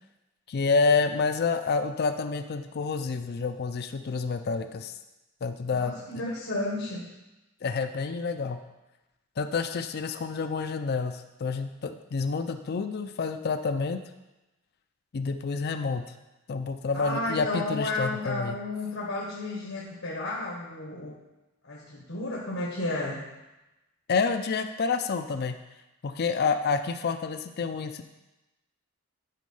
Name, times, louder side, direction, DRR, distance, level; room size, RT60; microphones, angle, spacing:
voice 1, 0.5-5.0 5.4-5.9 7.6-8.6 9.4-14.0 15.1-16.0 16.5-18.6 24.1-25.6 26.0-28.0, left 4 dB, 50° left, 8 dB, 0.4 m, -28 dB
voice 2, 5.7-7.1 16.9-21.2 21.6-23.3, left 2 dB, 80° left, -2 dB, 1.3 m, -32 dB
9.2 x 4.4 x 5.5 m, 1.0 s
head